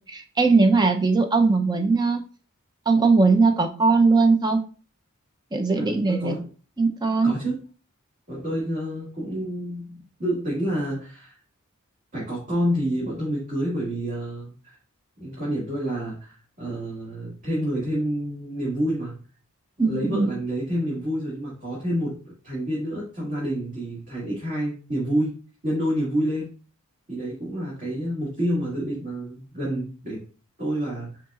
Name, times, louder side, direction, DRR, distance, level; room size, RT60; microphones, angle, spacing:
voice 1, 0.1-2.2 2.9-4.6 5.5-6.3 6.8-7.3 19.8-20.3, right 4 dB, 20° right, 6 dB, 0.5 m, -20 dB
voice 2, 5.8-6.5 7.2-7.6 8.3-11.4 12.1-14.8 15.2-19.2 19.8-25.3 25.6-26.5 27.1-30.2 30.6-31.2, equal, 40° right, -8 dB, 1.9 m, -28 dB
5.6 x 4.0 x 2.3 m, 0.37 s
head